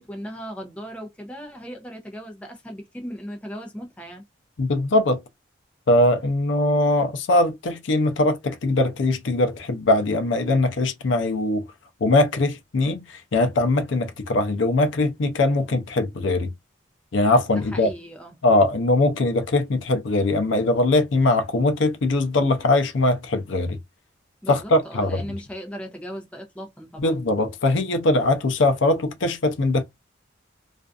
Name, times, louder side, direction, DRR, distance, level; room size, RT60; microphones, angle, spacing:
voice 1, 0.0-4.2 17.5-18.3 24.4-27.2, equal, 5° left, 0.5 m, -37 dB
voice 2, 4.6-5.2 5.9-11.7 12.0-16.5 17.1-17.9 18.4-23.8 24.5-25.2 27.0-29.8, left 2 dB, 75° left, 0.5 m, -21 dB
2.5 x 2.3 x 2.3 m
head